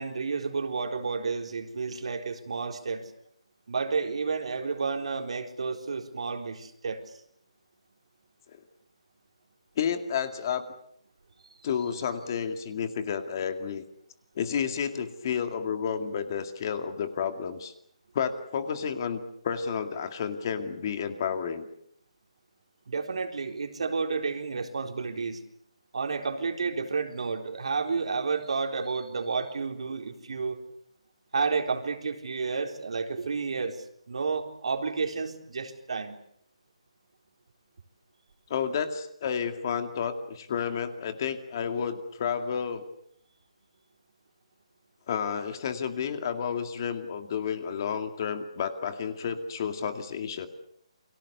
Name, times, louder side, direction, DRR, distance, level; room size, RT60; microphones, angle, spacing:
voice 1, 0.0-3.1 3.7-7.0 22.9-25.4 25.9-30.6 31.3-36.2, right 4 dB, 65° right, 4 dB, 4.0 m, -31 dB
voice 2, 9.8-10.6 11.6-13.8 14.4-17.7 18.1-21.7 38.5-42.8 45.1-50.5, left 7 dB, 35° left, 8 dB, 2.2 m, -31 dB
30.0 x 23.5 x 6.9 m, 0.70 s
hypercardioid pair, 165°, 3 cm